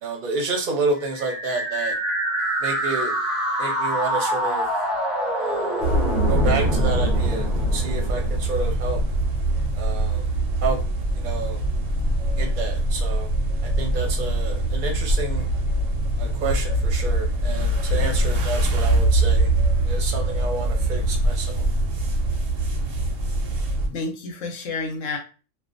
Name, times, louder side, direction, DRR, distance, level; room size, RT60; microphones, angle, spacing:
voice 1, 0.0-1.9 2.6-3.1 3.6-4.7 5.3-5.9 6.3-9.0 9.8-10.3 10.6-10.8 11.1-11.6 12.4-13.3 13.8-15.4 16.2-19.5 19.8-21.7, right 3 dB, 50° right, 1 dB, 0.7 m, -29 dB
sound 1, 1.0-9.0, equal, ahead, 0.3 m, -26 dB
sound 2, 5.8-23.9, right 1 dB, 90° right, 1.0 m, -23 dB
voice 2, 23.5-25.2, left 3 dB, 85° left, 3 dB, 1.0 m, -31 dB
2.4 x 2.2 x 2.5 m, 0.34 s
omnidirectional pair, 1.3 m